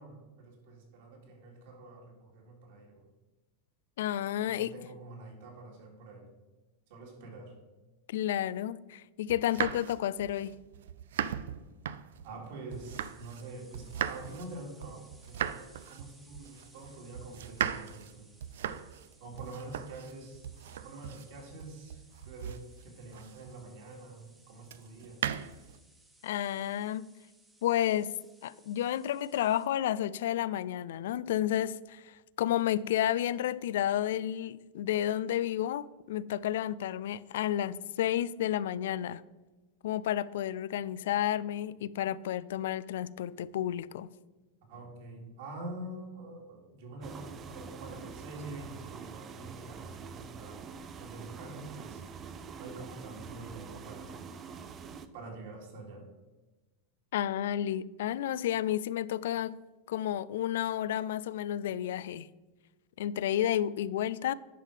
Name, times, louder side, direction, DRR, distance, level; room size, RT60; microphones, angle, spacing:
voice 1, 0.0-3.1 4.4-6.3 6.9-7.6 12.2-18.3 19.2-20.4 20.8-25.3 44.7-50.7 51.0-52.0 52.6-54.2 55.1-56.1, right 2 dB, 65° right, 2.7 m, -46 dB
voice 2, 4.0-4.8 8.1-10.5 26.2-27.1 27.6-28.2 28.4-39.2 39.8-44.1 57.1-59.6 59.9-62.3 63.0-64.3, left 11 dB, 80° left, 0.3 m, -31 dB
sound 1, 9.3-13.5 13.7-23.7 24.7-25.8, right 9 dB, 90° right, 0.4 m, -38 dB
sound 2, 12.7-29.7, right 1 dB, 5° right, 1.2 m, -63 dB
sound 3, 47.0-55.1, right 6 dB, 25° right, 0.5 m, -45 dB
10.0 x 5.6 x 4.9 m
supercardioid pair, 155°, 0 cm